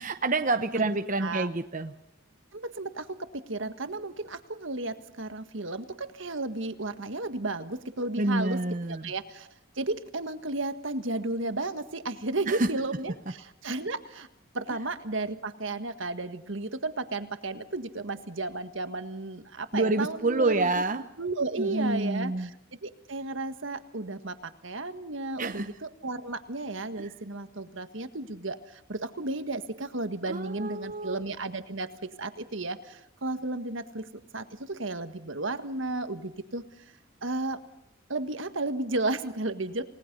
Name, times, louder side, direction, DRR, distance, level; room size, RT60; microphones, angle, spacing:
voice 1, 0.0-1.9 8.2-9.1 12.5-12.7 19.7-21.0 21.6-22.5 25.4-25.7 27.0-27.1 30.3-31.2, right 2 dB, 40° right, 7 dB, 0.9 m, -28 dB
voice 2, 0.8-1.5 2.5-3.1 3.5-8.6 8.9-9.5 9.8-14.3 14.5-20.8 21.2-22.6 22.8-31.9 32.2-34.1 34.3-36.6 37.2-37.6 38.1-39.8, right 2 dB, 65° right, 10 dB, 1.7 m, -33 dB
29.0 x 19.0 x 5.5 m, 0.82 s
head